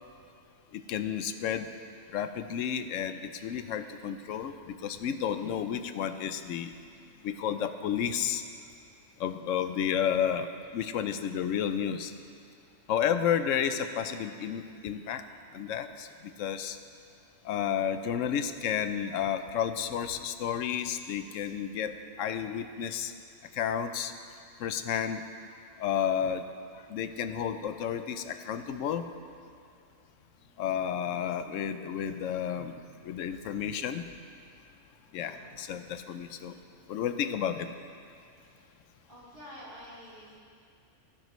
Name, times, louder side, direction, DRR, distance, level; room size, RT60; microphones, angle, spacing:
voice 1, 0.7-1.7 2.1-6.7 7.2-8.4 9.2-12.1 12.9-15.2 15.5-16.1 16.4-16.8 17.4-23.1 23.5-24.1 24.6-25.2 25.8-26.4 26.9-29.0 30.6-32.8 33.0-34.0 35.1-36.5 36.9-37.7, left 8 dB, 80° left, 10 dB, 0.9 m, -31 dB
voice 2, 12.6-13.1 35.1-35.5 38.3-38.8 39.1-40.4, equal, 45° right, -10 dB, 3.8 m, -50 dB
17.5 x 10.5 x 3.1 m, 2.3 s
omnidirectional pair, 1.3 m